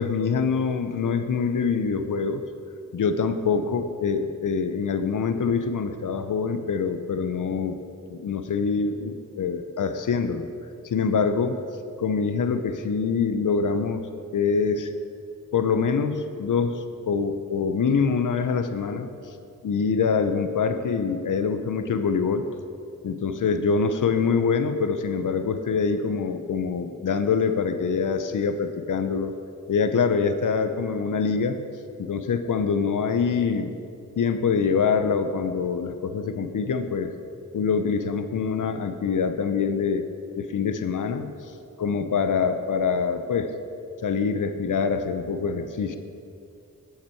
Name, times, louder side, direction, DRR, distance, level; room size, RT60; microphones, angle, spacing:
voice 1, 0.0-2.4 2.9-7.8 8.1-10.5 10.8-11.6 12.0-14.0 14.3-14.9 15.5-19.1 19.6-22.4 23.0-29.3 29.7-31.6 32.0-33.7 34.2-37.1 37.5-40.1 40.4-41.3 41.8-43.5 44.0-46.0, left 5 dB, 65° left, 9 dB, 0.6 m, -25 dB
10.0 x 5.7 x 4.5 m, 2.5 s
cardioid pair, 50°, 34 cm